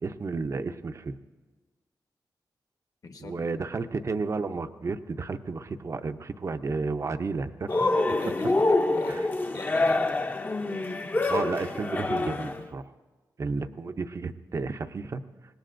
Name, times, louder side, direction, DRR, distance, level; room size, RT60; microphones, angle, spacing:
voice 1, 0.0-1.2 3.2-8.0 9.1-9.3 11.3-12.9 13.4-15.2, right 4 dB, 40° right, 9 dB, 0.6 m, -32 dB
voice 2, 3.0-3.6 7.7-10.3, left 3 dB, 55° left, 6 dB, 1.1 m, -40 dB
Cheering, 7.7-12.6, left 2 dB, 25° left, 0.6 m, -26 dB
25.5 x 19.5 x 2.6 m, 1.3 s
wide cardioid pair, 125°, 7 cm